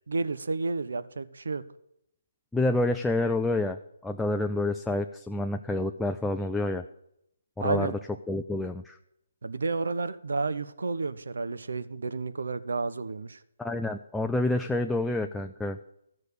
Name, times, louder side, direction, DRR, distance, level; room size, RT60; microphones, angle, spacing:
voice 1, 0.1-1.6 7.6-7.9 9.4-13.4, right 3 dB, 75° right, 12 dB, 0.9 m, -31 dB
voice 2, 2.5-6.8 7.6-8.0 8.3-9.0 13.6-15.8, left 2 dB, 5° left, 4 dB, 0.4 m, -28 dB
13.5 x 6.5 x 8.4 m, 0.80 s
figure-of-eight pair, 145°, 0 cm